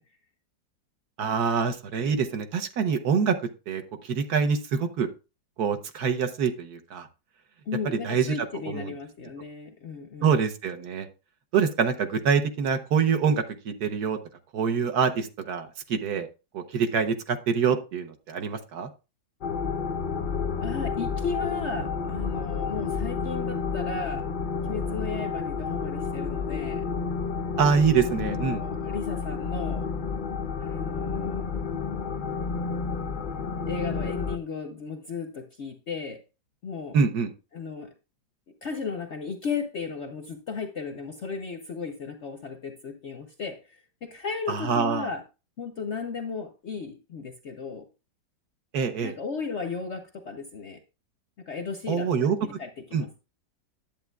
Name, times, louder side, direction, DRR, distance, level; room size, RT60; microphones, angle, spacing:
voice 1, 1.2-3.4 3.7-3.8 4.1-5.1 5.6-7.1 7.8-8.3 8.7-8.9 10.2-11.1 11.5-14.2 14.5-16.3 16.5-18.9 27.6-28.6 36.9-37.3 44.5-45.1 48.7-49.1 51.9-52.4 52.9-53.0, right 6 dB, 65° right, 1.3 m, -25 dB
voice 2, 7.7-10.3 20.6-24.3 24.7-26.8 28.0-29.9 30.6-31.5 33.7-36.2 36.6-37.0 37.5-37.9 38.6-45.2 45.6-47.9 49.0-50.8 51.4-53.1, left 5 dB, 55° left, 0.8 m, -35 dB
sound 1, 19.4-34.4, left 5 dB, 80° left, 0.4 m, -30 dB
10.5 x 8.2 x 2.3 m
omnidirectional pair, 1.9 m